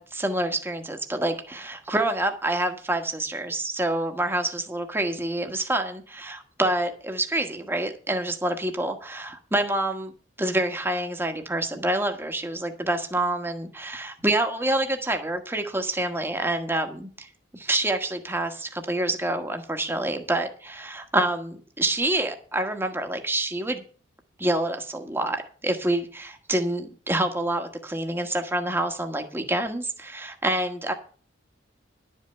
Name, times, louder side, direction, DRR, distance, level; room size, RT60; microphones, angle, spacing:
voice 1, 0.0-10.1 10.4-17.3 17.5-23.8 24.4-30.9, right 1 dB, 10° right, 6 dB, 1.2 m, -27 dB
11.5 x 5.5 x 7.8 m, 0.42 s
head